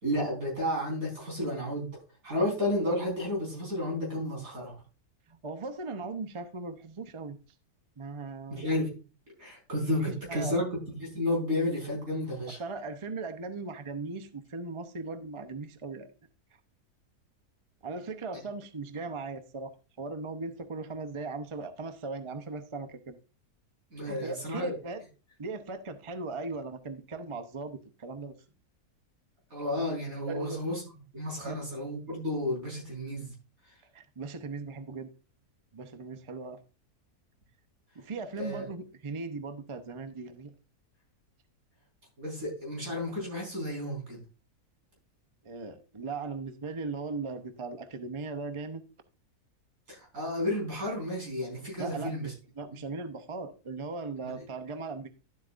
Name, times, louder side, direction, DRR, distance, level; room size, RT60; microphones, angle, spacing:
voice 1, 0.0-1.9 2.2-4.7 8.5-9.0 9.4-12.6 23.9-24.7 29.5-30.8 31.1-33.3 38.3-38.7 42.2-44.2 49.9-52.3, left 1 dB, 60° right, 5.1 m, -32 dB
voice 2, 5.3-7.4 8.0-8.7 10.0-10.7 12.5-16.1 17.8-19.7 20.0-23.2 24.1-25.0 25.4-28.4 30.3-30.6 31.4-31.7 33.9-35.1 35.7-36.6 37.9-40.5 45.4-48.8 51.8-55.1, right 3 dB, 35° right, 0.5 m, -38 dB
12.0 x 8.0 x 2.5 m
omnidirectional pair, 1.6 m